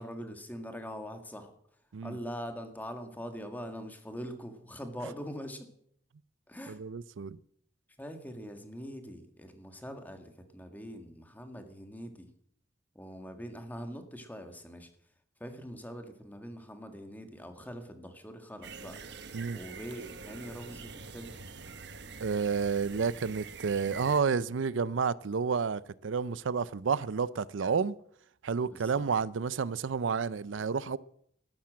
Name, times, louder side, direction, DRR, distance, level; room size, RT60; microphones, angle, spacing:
voice 1, 0.0-1.5 2.0-5.7 6.5-6.8 8.0-12.3 13.0-14.9 15.4-19.0 19.5-21.4 28.6-29.1, equal, 10° left, 1.8 m, -43 dB
voice 2, 6.7-7.4 19.3-19.6 22.2-27.9 28.4-31.0, right 5 dB, 90° right, 0.5 m, -30 dB
sound 1, 18.6-24.2, right 4 dB, 65° right, 1.2 m, -46 dB
13.0 x 12.0 x 7.6 m
head